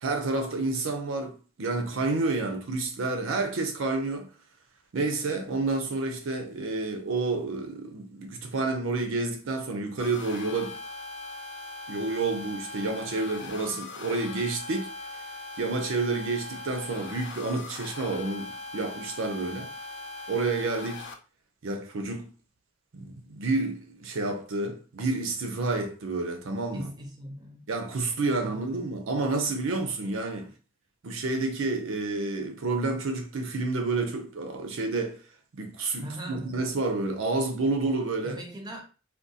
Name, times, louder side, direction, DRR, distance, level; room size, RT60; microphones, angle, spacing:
voice 1, 0.0-4.3 4.9-10.8 11.9-14.9 15.6-19.7 20.3-21.1 21.6-22.3 22.9-26.9 27.7-30.5 31.0-35.2 35.5-38.4, right 3 dB, 70° right, 0.5 m, -29 dB
sound 1, 10.0-21.1, left 2 dB, 60° left, 0.5 m, -40 dB
voice 2, 26.7-27.6 28.3-28.9 30.4-30.5 36.0-36.6 38.2-38.8, right 1 dB, 20° right, 0.6 m, -40 dB
3.5 x 2.3 x 2.7 m
head